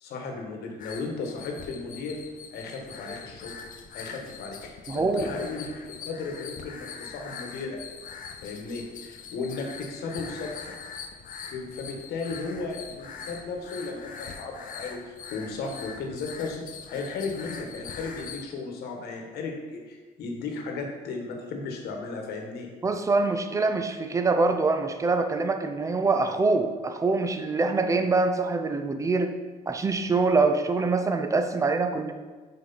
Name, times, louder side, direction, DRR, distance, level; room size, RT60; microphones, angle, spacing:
voice 1, 0.0-2.2 2.5-3.6 3.9-7.8 8.4-10.7 11.4-16.6 16.9-22.7, left 4 dB, 75° left, 2 dB, 1.3 m, -35 dB
sound 1, 0.8-18.4, left 6 dB, 55° left, 0.6 m, -42 dB
voice 2, 4.9-5.3 22.8-29.3 29.7-32.1, right 3 dB, 20° right, 7 dB, 0.5 m, -24 dB
5.7 x 4.8 x 4.0 m, 1.4 s
cardioid pair, 110°, 17 cm